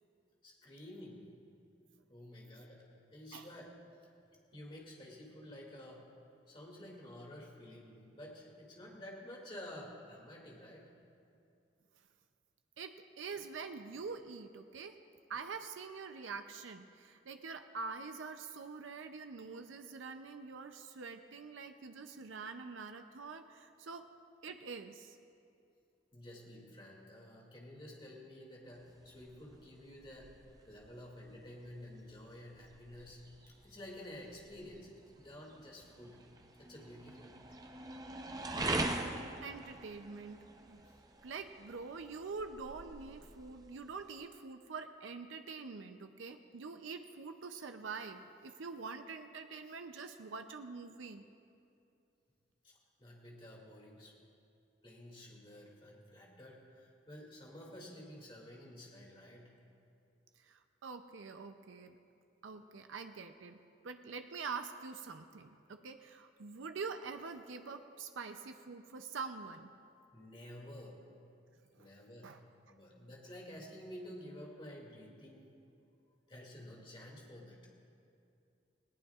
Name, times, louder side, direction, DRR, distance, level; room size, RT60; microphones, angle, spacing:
voice 1, 0.4-1.3 2.1-3.7 4.5-6.1 6.5-10.9 26.1-30.3 30.7-34.9 35.2-36.2 36.6-37.4 40.8-41.0 52.6-54.1 54.8-59.5 70.1-71.0 71.8-72.4 72.7-75.5 76.3-77.6, left 1 dB, 25° left, -2 dB, 2.4 m, -51 dB
voice 2, 12.8-15.0 15.3-24.0 24.4-25.2 38.9-39.1 39.4-40.8 41.2-51.2 60.4-62.0 62.4-63.6 63.8-69.7 71.7-71.9 72.2-72.4, right 4 dB, 85° right, 7 dB, 0.6 m, -45 dB
sound 1, 28.7-44.3, right 2 dB, 20° right, 0.6 m, -44 dB
19.0 x 17.5 x 2.4 m, 2.5 s
head